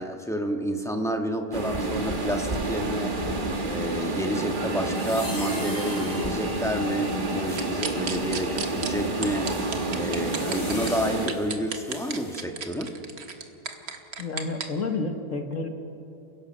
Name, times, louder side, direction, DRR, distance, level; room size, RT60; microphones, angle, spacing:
voice 1, 0.0-13.0, equal, ahead, 4 dB, 1.3 m, -30 dB
sound 1, 1.5-11.3, right 2 dB, 35° right, 1.6 m, -29 dB
sound 2, 4.9-7.9 8.5-12.4, left 2 dB, 30° left, 2.9 m, -42 dB
sound 3, 7.6-8.9 9.2-10.9 11.3-14.6, right 5 dB, 70° right, 1.9 m, -32 dB
voice 2, 14.2-15.7, left 3 dB, 55° left, 5 dB, 1.6 m, -30 dB
29.5 x 16.5 x 6.4 m, 2.8 s
omnidirectional pair, 1.7 m